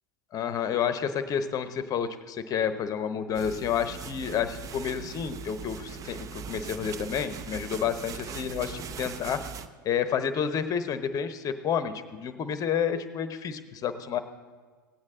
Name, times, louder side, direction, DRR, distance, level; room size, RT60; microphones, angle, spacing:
voice 1, 0.3-9.4 9.8-14.2, left 8 dB, 35° left, 11 dB, 0.9 m, -30 dB
sound 1, 3.3-9.7, right 7 dB, 30° right, 0.6 m, -40 dB
17.5 x 8.6 x 3.7 m, 1.5 s
hypercardioid pair, 90°, 11 cm